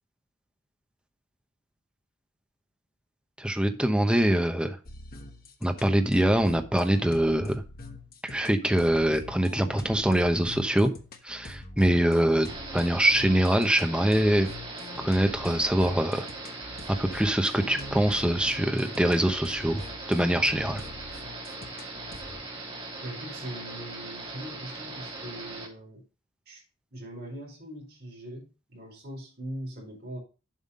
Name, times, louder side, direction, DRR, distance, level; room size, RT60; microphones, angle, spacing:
voice 1, 3.4-4.8 5.6-7.6 8.2-10.9 11.2-14.5 15.0-16.3 16.9-19.8 20.1-20.8, right 1 dB, 5° right, 6 dB, 0.9 m, -24 dB
sound 1, 4.9-22.4, left 1 dB, 45° left, 1.2 m, -44 dB
sound 2, 12.5-25.7, right 2 dB, 25° right, 3.2 m, -40 dB
voice 2, 23.0-26.0 26.5-26.6 26.9-30.2, right 1 dB, 50° right, -1 dB, 4.3 m, -41 dB
7.4 x 5.8 x 5.5 m, 0.33 s
head